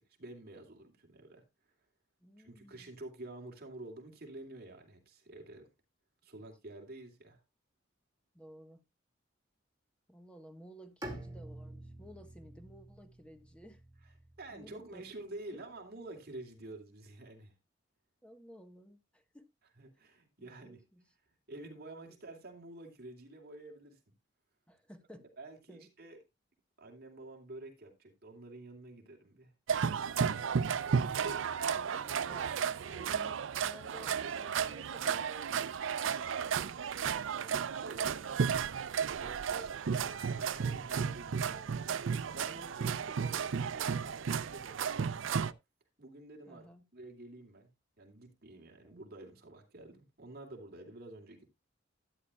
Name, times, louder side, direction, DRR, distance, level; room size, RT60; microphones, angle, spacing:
voice 1, 0.0-1.4 2.4-5.7 6.2-7.4 14.4-17.5 19.8-20.8 21.5-24.1 25.4-26.2 26.8-29.5 36.3-38.3 39.2-41.7 42.2-45.5 46.0-46.7 46.9-47.7 48.0-51.5, right 2 dB, 55° right, 2.7 m, -49 dB
voice 2, 2.2-2.9 8.3-8.8 10.1-13.8 14.5-15.0 15.5-15.6 18.2-19.5 20.4-21.0 24.7-25.3 25.7-25.9 31.6-35.7 41.4-42.0 42.6-42.7 46.5-46.8 48.8-49.0, equal, 5° left, 1.3 m, -55 dB
Bowed string instrument, 11.0-14.9, right 1 dB, 20° right, 2.3 m, -48 dB
sound 1, 29.7-45.5, right 6 dB, 90° right, 0.5 m, -33 dB
13.0 x 9.7 x 2.3 m
head